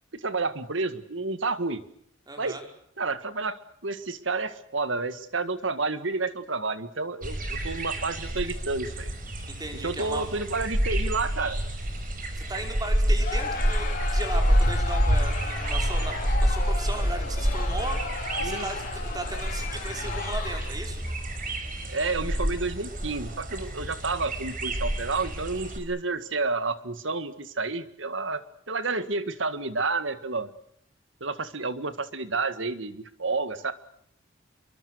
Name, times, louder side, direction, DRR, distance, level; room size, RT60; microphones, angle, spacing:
voice 1, 0.2-1.8 2.4-2.6 3.0-9.1 9.8-11.6 18.4-18.7 21.9-28.4 28.7-30.5 31.2-33.7, right 3 dB, 70° right, 11 dB, 1.9 m, -30 dB
voice 2, 2.3-2.6 9.5-10.3 12.4-18.0 18.4-21.0, right 2 dB, 20° right, 4 dB, 5.1 m, -36 dB
sound 1, 7.2-25.8, equal, 45° right, 5.1 m, -28 dB
Crowd, 13.2-20.9, left 4 dB, 40° left, 4.4 m, -35 dB
27.5 x 23.5 x 6.4 m, 0.71 s
head